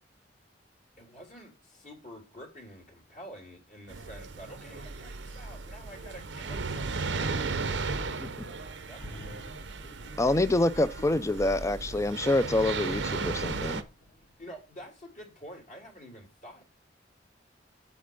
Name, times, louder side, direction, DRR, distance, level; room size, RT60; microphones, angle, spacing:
voice 1, 1.0-9.1 14.4-16.6, equal, 50° left, 3.1 m, -48 dB
sound 1, 3.9-13.8, right 4 dB, 85° right, 0.8 m, -35 dB
sound 2, 9.0-14.8 15.2-15.3, equal, 70° left, 2.7 m, -50 dB
voice 2, 10.2-13.8, left 2 dB, 15° left, 0.5 m, -26 dB
8.4 x 4.4 x 5.2 m
head